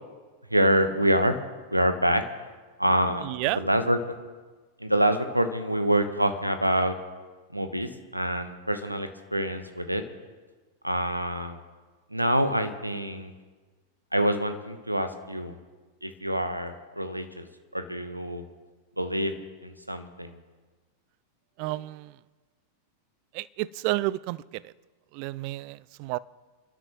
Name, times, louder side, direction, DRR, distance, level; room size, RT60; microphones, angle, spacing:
voice 1, 0.5-1.4 1.7-2.2 2.8-4.0 4.8-7.0 7.5-10.0 10.8-11.6 12.1-13.3 14.1-15.6 16.0-17.5 17.7-18.4 19.0-19.3 19.6-20.4, right 1 dB, 85° right, 9 dB, 1.0 m, -26 dB
voice 2, 3.2-3.6 21.6-22.2 23.3-24.7 25.1-26.2, right 19 dB, 45° right, 21 dB, 0.3 m, -31 dB
28.5 x 12.0 x 3.1 m, 1.4 s
figure-of-eight pair, 90°, 0 cm